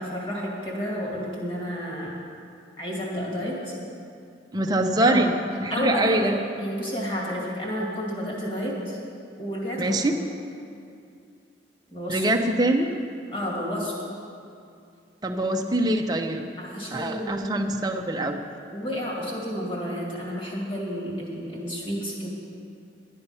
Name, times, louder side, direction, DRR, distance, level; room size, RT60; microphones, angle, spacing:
voice 1, 0.0-2.1 2.8-3.7 5.0-5.2 5.7-6.2 6.6-9.0 9.4-10.0 11.9-12.3 13.3-13.9 16.6-17.7 18.7-22.3, equal, 30° left, -3 dB, 2.4 m, -31 dB
voice 2, 4.5-5.3 5.6-6.4 9.8-10.1 12.1-12.9 15.2-16.5 16.9-18.4, right 1 dB, 20° right, 3 dB, 0.7 m, -24 dB
12.0 x 9.9 x 5.6 m, 2.4 s
head